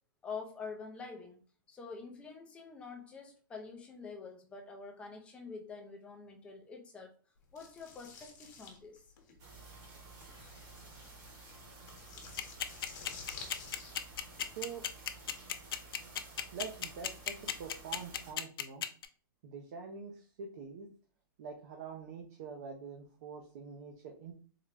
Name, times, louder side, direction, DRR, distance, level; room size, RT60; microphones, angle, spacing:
voice 1, 0.2-1.4 1.7-7.1 7.5-9.0, left 4 dB, 10° left, 2 dB, 0.4 m, -46 dB
sound 1, 7.6-14.4, left 4 dB, 50° left, 0.9 m, -51 dB
sound 2, 9.4-18.3, right 3 dB, 30° right, 1.0 m, -53 dB
sound 3, 12.4-19.0, left 10 dB, 80° left, 0.4 m, -34 dB
voice 2, 16.5-17.3 17.6-18.8 19.4-20.9 21.4-24.4, right 6 dB, 45° right, 1 dB, 0.5 m, -45 dB
3.7 x 2.1 x 3.3 m, 0.40 s
hypercardioid pair, 165°, 12 cm